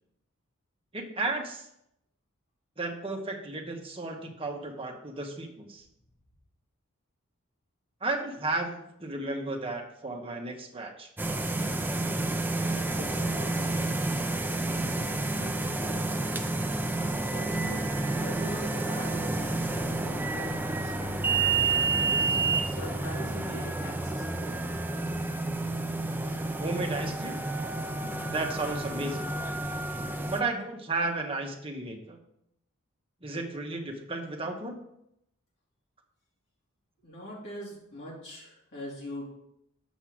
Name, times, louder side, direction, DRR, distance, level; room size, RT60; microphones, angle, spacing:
voice 1, 0.9-1.7 2.8-5.8 8.0-11.1 26.6-27.4 28.3-29.3 30.3-32.2 33.2-34.8, right 2 dB, 25° right, 2 dB, 1.2 m, -33 dB
sound 1, 11.2-30.4, right 3 dB, 10° right, 0.5 m, -30 dB
voice 2, 12.7-14.1 14.7-16.5 17.3-17.9 18.2-21.3 22.1-24.6 37.0-39.3, equal, 55° left, -5 dB, 4.0 m, -43 dB
7.3 x 5.4 x 6.1 m, 0.77 s
head